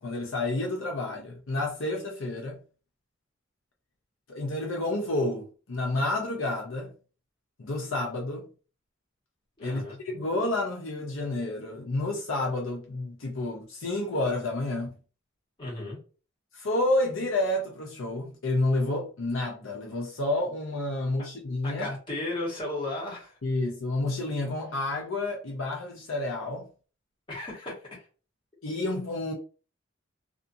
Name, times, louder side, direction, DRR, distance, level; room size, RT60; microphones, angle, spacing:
voice 1, 0.0-2.6 4.3-6.9 7.6-8.5 9.6-14.9 16.5-21.9 23.4-26.7 28.6-29.3, left 2 dB, 75° left, 0.6 m, -30 dB
voice 2, 9.6-10.0 15.6-16.0 21.2-21.3 21.6-23.4 27.3-28.1, left 2 dB, 25° left, 1.2 m, -35 dB
2.5 x 2.5 x 2.6 m
head